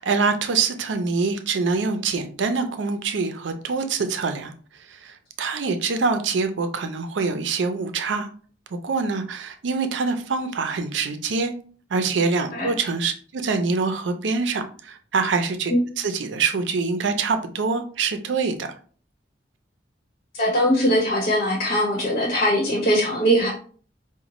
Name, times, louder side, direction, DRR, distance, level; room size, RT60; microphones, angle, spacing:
voice 1, 0.0-4.5 4.9-8.3 8.8-11.5 11.9-18.7, right 4 dB, 90° right, 0.5 m, -25 dB
voice 2, 20.3-23.5, equal, 50° left, 1.0 m, -21 dB
5.0 x 2.1 x 3.0 m
head